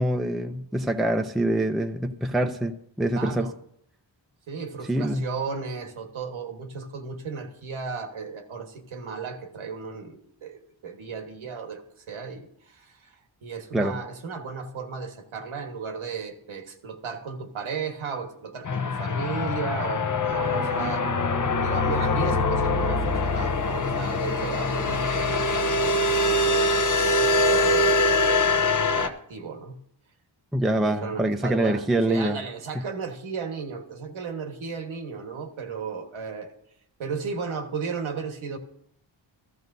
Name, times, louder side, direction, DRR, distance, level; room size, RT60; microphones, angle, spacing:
voice 1, 0.0-3.5 4.9-5.3 13.7-14.0 30.5-32.4, right 1 dB, ahead, 5 dB, 0.5 m, -25 dB
voice 2, 3.1-3.5 4.5-11.8 12.1-21.1 21.6-29.8 30.8-36.5 37.0-38.6, right 5 dB, 85° right, 5 dB, 1.5 m, -35 dB
sound 1, 18.7-29.1, left 2 dB, 40° left, 0.8 m, -23 dB
14.0 x 13.5 x 2.7 m, 0.74 s
cardioid pair, 75°, 47 cm